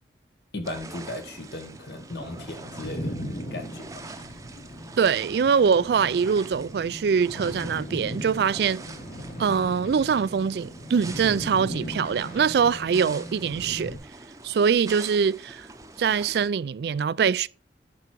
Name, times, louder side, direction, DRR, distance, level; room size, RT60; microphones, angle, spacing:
voice 1, 0.5-3.1 3.5-4.0, left 1 dB, 70° left, 1.6 m, -36 dB
sound 1, 0.6-16.5, right 3 dB, 20° right, 0.7 m, -45 dB
sound 2, 2.1-14.0, equal, 45° left, 5.5 m, -38 dB
voice 2, 5.0-8.8 9.4-14.0 14.4-15.7 16.0-17.5, right 6 dB, 65° right, 0.3 m, -23 dB
10.5 x 4.8 x 4.5 m
head